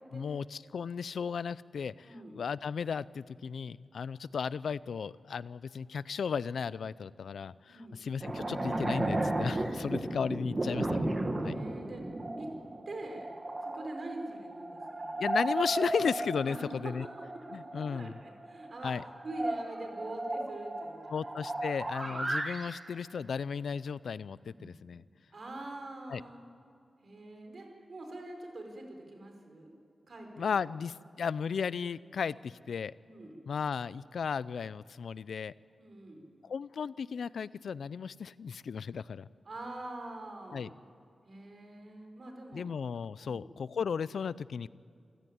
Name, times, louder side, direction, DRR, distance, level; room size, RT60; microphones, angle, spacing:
voice 1, 0.1-11.1 11.4-11.6 15.2-17.1 17.5-18.2 18.8-19.0 21.1-25.0 26.1-26.2 30.4-32.9 33.5-35.5 36.4-39.3 40.5-40.7 42.5-44.7, left 6 dB, 85° left, 18 dB, 0.5 m, -35 dB
voice 2, 2.0-2.4 7.7-8.0 11.4-12.0 12.4-12.5 12.9-13.3 13.6-15.2 16.5-21.3 22.0-22.2 25.3-26.4 27.0-29.7 30.1-30.3 30.6-30.7 33.0-33.4 35.8-36.3 39.4-40.8 41.2-42.7 43.2-43.5, right 2 dB, 50° right, 3 dB, 4.6 m, -44 dB
sound 1, 8.2-22.7 24.6-24.7, right 1 dB, 25° right, 2.1 m, -35 dB
27.5 x 15.5 x 9.5 m, 2.5 s
wide cardioid pair, 160°, 0 cm